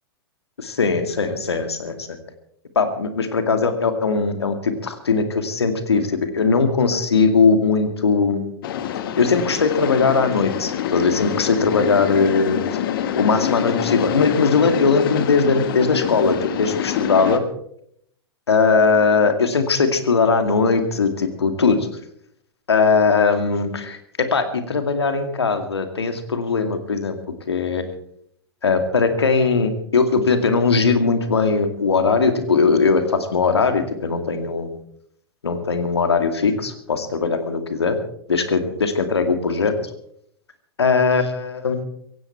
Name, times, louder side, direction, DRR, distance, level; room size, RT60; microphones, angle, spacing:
voice 1, 0.6-2.1 2.8-8.6 9.2-12.6 13.2-17.4 18.5-21.8 22.7-24.0 24.3-27.2 27.5-27.8 28.6-34.7 35.4-38.0 38.3-39.7 40.8-41.8, left 4 dB, 85° left, 8 dB, 2.3 m, -19 dB
sound 1, 8.6-17.4, left 9 dB, 60° left, 1.6 m, -26 dB
17.0 x 15.5 x 4.5 m, 0.70 s
hypercardioid pair, 105°, 13 cm